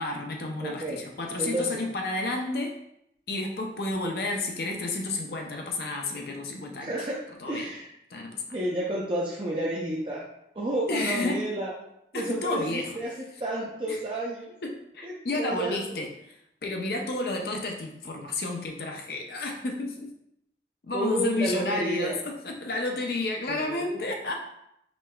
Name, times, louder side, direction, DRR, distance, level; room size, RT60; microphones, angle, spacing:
voice 1, 0.0-2.8 3.3-6.9 7.4-7.7 8.1-8.6 10.9-11.5 12.1-13.0 13.9-14.0 14.6-20.1 20.8-24.5, left 2 dB, 60° left, 2 dB, 0.5 m, -31 dB
voice 2, 0.6-1.0 1.4-1.9 6.8-7.2 7.5-7.9 8.5-10.3 10.5-11.8 12.1-14.5 15.0-15.9 20.9-22.2 23.5-23.9, right 1 dB, 30° right, -4 dB, 0.5 m, -31 dB
5.0 x 3.3 x 2.2 m, 0.77 s
head